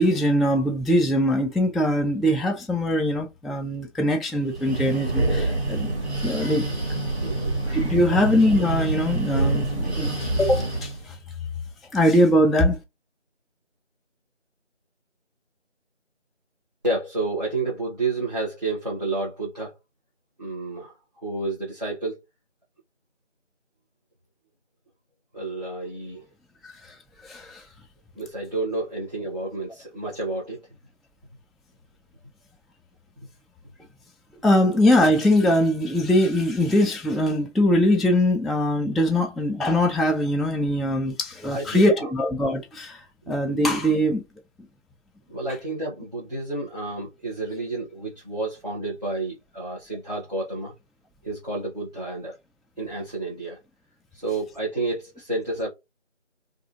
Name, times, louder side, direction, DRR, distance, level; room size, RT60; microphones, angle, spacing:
voice 1, 0.0-5.9 6.2-6.7 7.7-11.2 11.9-12.8 26.6-27.0 27.2-27.6 34.4-44.2, left 1 dB, ahead, 0.3 m, -22 dB
Breathing, 4.4-11.0, right 2 dB, 60° right, 1.5 m, -26 dB
voice 2, 7.2-7.5 8.1-8.2 16.8-19.7 20.4-22.2 25.3-26.2 28.1-30.6 41.4-42.1 43.3-43.6 45.3-50.7 51.2-52.4 52.8-53.6 54.1-55.7, right 2 dB, 35° right, 0.8 m, -30 dB
2.7 x 2.4 x 2.5 m
figure-of-eight pair, 175°, 36 cm